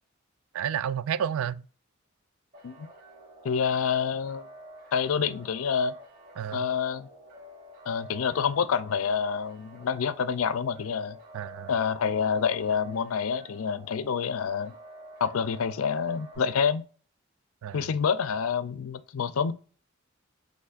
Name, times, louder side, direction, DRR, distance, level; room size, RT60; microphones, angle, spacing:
voice 1, 0.5-1.7 6.4-6.7 11.3-11.7 17.6-17.9, right 8 dB, 80° right, 0.3 m, -31 dB
sound 1, 2.5-16.4, equal, 45° right, 2.2 m, -50 dB
voice 2, 3.4-4.5 4.9-5.9 6.5-7.1 7.9-11.2 11.7-14.7 15.2-16.8 17.7-19.5, left 6 dB, 80° left, 0.4 m, -27 dB
5.6 x 3.2 x 2.4 m
head